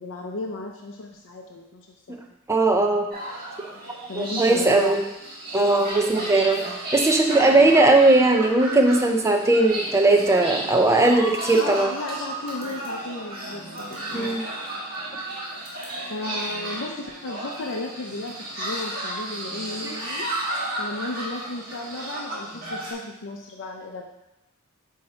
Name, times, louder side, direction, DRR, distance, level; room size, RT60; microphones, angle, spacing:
voice 1, 0.0-2.2 4.1-4.9 6.1-6.3 11.6-13.6 14.1-14.4 16.1-20.3 20.8-24.0, left 2 dB, 60° left, 0 dB, 0.6 m, -34 dB
voice 2, 2.5-3.1 4.2-5.0 5.5-11.9 14.1-14.4 19.8-19.9, right 2 dB, 15° right, 3 dB, 0.5 m, -19 dB
sound 1, 3.1-22.9, right 1 dB, 45° right, 1.7 m, -33 dB
7.8 x 2.8 x 4.3 m, 0.96 s
head